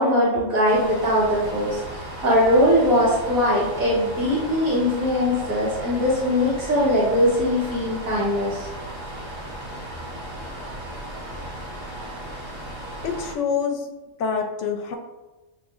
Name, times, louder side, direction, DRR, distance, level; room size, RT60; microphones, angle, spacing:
voice 1, 0.0-8.7, equal, 75° right, -7 dB, 1.6 m, -21 dB
sound 1, 0.7-13.4, right 1 dB, 25° right, 0.8 m, -36 dB
voice 2, 13.0-13.9 14.2-14.9, left 6 dB, 65° left, 4 dB, 0.8 m, -26 dB
7.2 x 2.9 x 2.4 m, 1.1 s
omnidirectional pair, 1.5 m